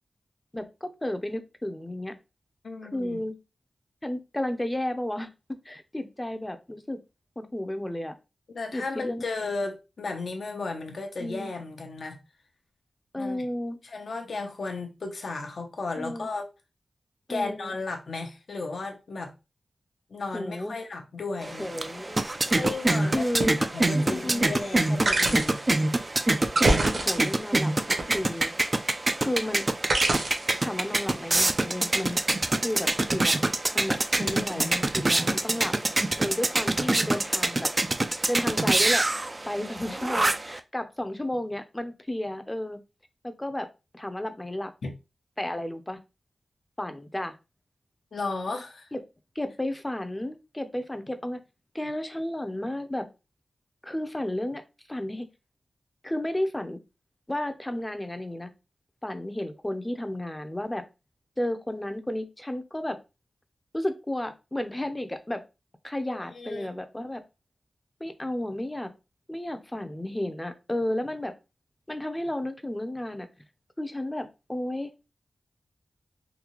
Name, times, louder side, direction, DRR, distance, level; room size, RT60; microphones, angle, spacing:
voice 1, 0.5-2.1 2.9-3.3 4.0-5.3 5.6-7.0 7.4-8.2 8.7-9.2 11.2-11.6 13.1-13.8 16.0-16.3 17.3-17.7 20.3-20.7 21.6-22.3 23.0-23.6 23.9-24.5 26.6-28.5 29.2-29.6 30.6-32.2 32.6-33.4 33.7-35.7 36.2-37.7 38.3-39.1 39.4-42.8 43.2-43.7 43.9-44.7 45.4-46.0 46.8-47.3 48.9-49.0 49.4-51.4 51.7-53.1 53.8-54.6 54.9-55.3 56.0-56.8 57.3-58.5 59.0-60.8 61.4-63.0 63.7-65.4 65.8-67.2 68.0-68.9 69.3-71.3 71.9-73.3 73.8-74.9, left 1 dB, 15° left, 0.6 m, -32 dB
voice 2, 2.6-3.2 8.5-12.2 13.2-13.5 13.8-16.4 17.3-19.3 20.1-21.9 22.5-25.6 34.2-34.7 39.6-39.9 44.8-44.9 48.1-48.9 66.3-66.7, left 3 dB, 70° left, 0.9 m, -34 dB
sound 1, 21.4-40.6, right 2 dB, 30° right, 0.4 m, -26 dB
sound 2, 22.5-22.7 23.4-23.5 25.1-25.7 26.4-27.5 28.0-28.6 29.9-30.5 31.4-31.6, right 2 dB, 70° right, 1.2 m, -26 dB
3.9 x 2.8 x 3.1 m
cardioid pair, 65°, 0 cm